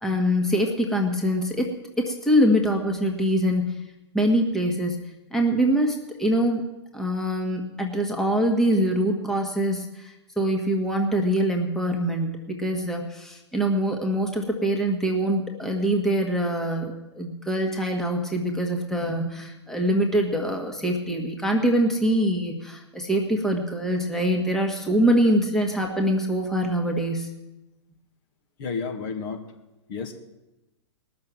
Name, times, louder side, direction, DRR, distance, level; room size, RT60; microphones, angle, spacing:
voice 1, 0.0-3.7 4.1-5.0 5.3-6.6 6.9-27.3, equal, 5° left, 1 dB, 1.7 m, -24 dB
voice 2, 28.6-29.5 29.9-30.1, left 5 dB, 50° left, 4 dB, 2.2 m, -31 dB
20.0 x 6.8 x 7.7 m, 0.99 s
hypercardioid pair, 120°, 15 cm